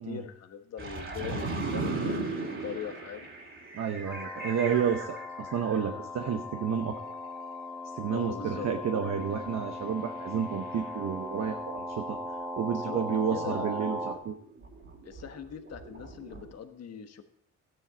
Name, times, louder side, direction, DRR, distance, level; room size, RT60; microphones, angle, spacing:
voice 1, 0.0-3.3 8.1-8.7 12.7-13.8 15.0-17.2, left 8 dB, 55° left, 8 dB, 1.3 m, -41 dB
sound 1, 0.8-6.0 6.3-7.7 8.0-9.2 10.3-12.1 13.4-16.5, right 3 dB, 40° right, 2.8 m, -38 dB
voice 2, 3.7-7.0 7.9-12.2 12.6-14.3, right 7 dB, 65° right, 5 dB, 1.0 m, -31 dB
sound 2, 4.1-14.1, left 1 dB, 5° right, 1.3 m, -38 dB
13.0 x 9.6 x 4.1 m, 0.70 s
cardioid pair, 90°, 30 cm